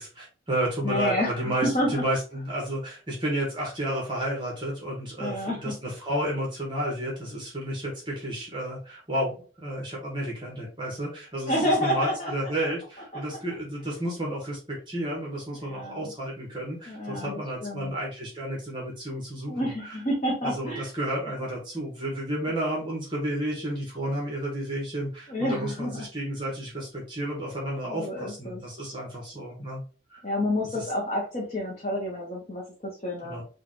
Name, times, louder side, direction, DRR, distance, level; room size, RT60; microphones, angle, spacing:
voice 1, 0.0-19.6 20.4-29.8 30.1-30.2 30.7-30.9 33.2-33.4, right 1 dB, 25° right, -3 dB, 1.3 m, -31 dB
voice 2, 0.8-2.0 5.2-5.7 11.5-12.3 13.1-13.2 15.6-16.1 16.9-17.9 19.5-20.9 25.3-26.0 27.8-28.6 30.2-33.4, left 1 dB, 35° left, -3 dB, 0.8 m, -29 dB
5.0 x 2.4 x 3.1 m, 0.37 s
head